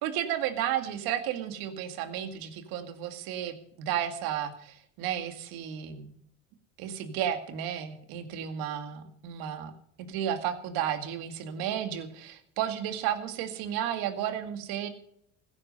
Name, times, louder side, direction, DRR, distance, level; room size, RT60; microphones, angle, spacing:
voice 1, 0.0-6.1 6.8-14.9, right 10 dB, 75° right, 8 dB, 2.2 m, -33 dB
16.0 x 9.8 x 5.4 m, 0.70 s
supercardioid pair, 85°, 36 cm